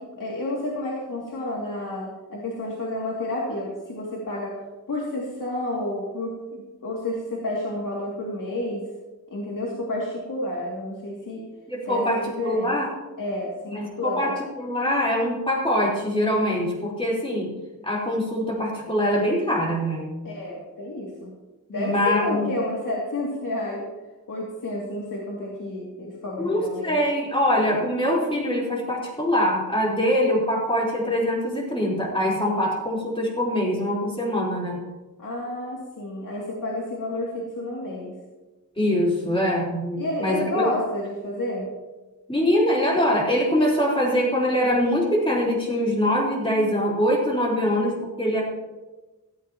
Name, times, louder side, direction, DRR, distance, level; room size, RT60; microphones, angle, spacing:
voice 1, 0.1-4.5 4.9-8.8 9.3-11.4 11.8-12.8 13.2-14.3 20.2-21.3 21.7-23.9 24.3-27.0 35.2-38.1 40.0-41.7, left 1 dB, 75° left, -4 dB, 2.7 m, -30 dB
voice 2, 11.7-12.9 13.7-17.5 17.8-20.1 21.7-22.5 26.4-34.8 38.8-40.7 42.3-48.4, equal, 15° left, -4 dB, 4.1 m, -23 dB
16.5 x 16.0 x 3.0 m, 1.1 s
wide cardioid pair, 180°, 32 cm